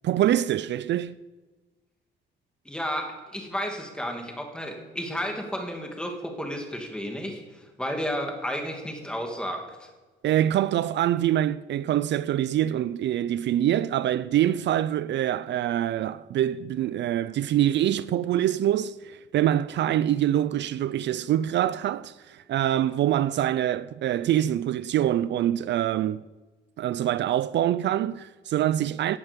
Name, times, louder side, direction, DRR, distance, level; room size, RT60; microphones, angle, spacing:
voice 1, 0.0-1.2 10.2-26.2 26.8-29.2, right 12 dB, 60° right, 0.4 m, -25 dB
voice 2, 2.7-9.9, equal, 5° left, 2.5 m, -32 dB
18.0 x 11.0 x 5.3 m
cardioid pair, 140°, 20 cm